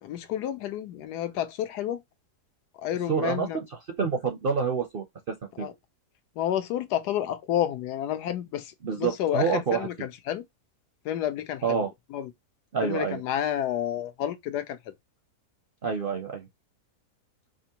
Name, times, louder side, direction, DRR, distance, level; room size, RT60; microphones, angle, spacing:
voice 1, 0.0-2.0 2.8-3.6 5.6-5.7 6.4-10.4 11.0-12.3 12.8-14.8, left 11 dB, 85° left, 1.3 m, -30 dB
voice 2, 3.1-5.7 8.8-9.9 11.6-11.9 12.7-13.2 15.8-16.5, right 6 dB, 55° right, 0.6 m, -28 dB
5.0 x 2.5 x 2.8 m
omnidirectional pair, 1.7 m